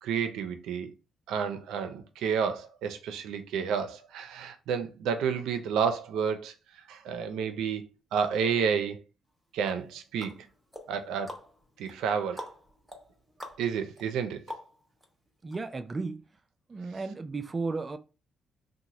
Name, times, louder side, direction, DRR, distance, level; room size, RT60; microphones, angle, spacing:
voice 1, 0.0-0.9 1.3-6.5 6.9-7.8 8.1-9.0 9.5-10.4 10.9-11.3 11.8-12.5 13.6-14.4, right 7 dB, 85° right, 0.5 m, -30 dB
sound 1, 9.7-15.1 15.5-15.6, equal, 5° right, 0.9 m, -46 dB
voice 2, 15.4-16.2 16.7-18.0, right 3 dB, 30° right, 0.4 m, -34 dB
2.9 x 2.1 x 3.8 m
cardioid pair, 90°, 0 cm